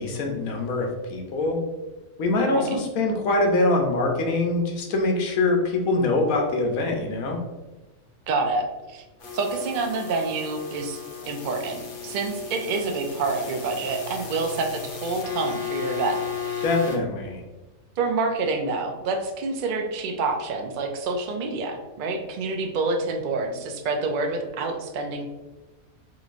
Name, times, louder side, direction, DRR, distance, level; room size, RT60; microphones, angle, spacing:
voice 1, 0.0-1.6 2.2-7.4 16.6-17.4, left 2 dB, 85° left, 2 dB, 1.1 m, -24 dB
voice 2, 8.3-9.0 9.3-11.0 11.3-16.6 18.0-25.3, right 3 dB, 90° right, 3 dB, 0.4 m, -27 dB
sound 1, 9.2-17.0, left 7 dB, 55° left, 0.6 m, -34 dB
3.8 x 3.1 x 2.5 m, 1.1 s
omnidirectional pair, 1.4 m